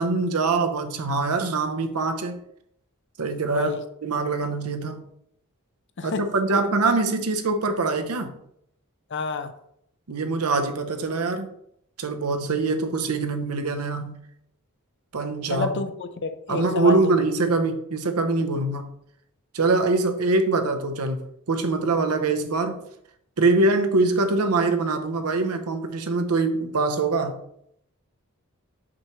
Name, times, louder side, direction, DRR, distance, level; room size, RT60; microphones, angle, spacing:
voice 1, 0.0-2.4 3.2-5.1 6.0-8.3 10.1-11.5 12.0-14.2 15.1-15.7 16.5-18.9 19.5-22.8 23.4-27.4, right 3 dB, 85° right, 0.8 m, -24 dB
voice 2, 9.1-9.5 15.5-17.1, left 4 dB, 55° left, 0.6 m, -29 dB
6.3 x 5.7 x 3.1 m
head